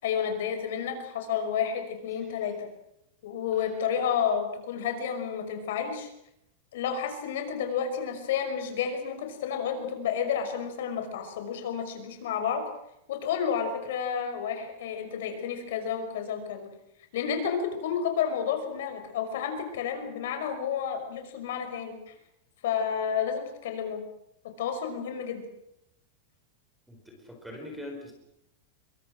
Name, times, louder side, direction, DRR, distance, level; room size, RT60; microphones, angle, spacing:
voice 1, 0.0-2.7 3.2-6.1 6.7-12.6 13.1-16.7 17.1-22.1 22.6-24.0 24.4-25.4, left 7 dB, 60° left, 6 dB, 5.8 m, -31 dB
voice 2, 26.9-28.1, left 1 dB, ahead, 2 dB, 4.6 m, -42 dB
26.5 x 23.5 x 6.2 m, 0.78 s
supercardioid pair, 180°, 0 cm